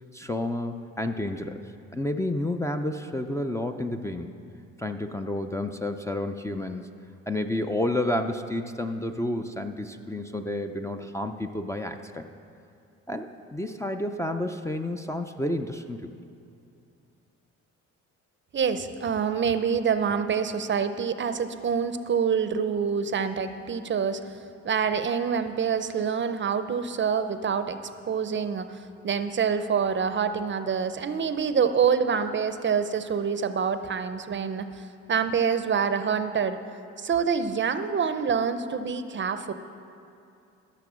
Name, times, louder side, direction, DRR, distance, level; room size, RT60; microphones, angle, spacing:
voice 1, 0.1-1.6 1.9-4.3 4.8-6.9 7.3-12.2 13.1-16.1, left 1 dB, 10° left, 6 dB, 0.5 m, -30 dB
voice 2, 18.5-24.4 24.6-27.8 28.1-36.6 37.0-39.5, right 6 dB, 40° right, 10 dB, 0.6 m, -26 dB
14.5 x 6.7 x 6.2 m, 2.6 s
cardioid pair, 90°, 30 cm